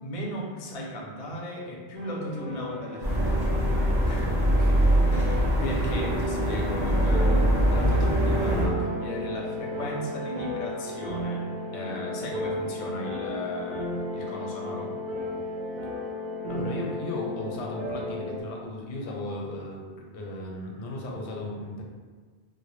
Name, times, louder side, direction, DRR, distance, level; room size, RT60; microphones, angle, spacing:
voice 1, 0.0-3.4 5.6-15.0, equal, 55° left, -2 dB, 0.4 m, -36 dB
sound 1, 1.9-18.4, left 1 dB, 60° right, 0.6 m, -34 dB
sound 2, 3.0-8.7, equal, 25° right, 0.8 m, -23 dB
voice 2, 4.0-4.9 5.8-5.9 16.5-21.8, left 2 dB, 85° left, -2 dB, 0.8 m, -36 dB
2.2 x 2.0 x 3.0 m, 1.5 s
omnidirectional pair, 1.1 m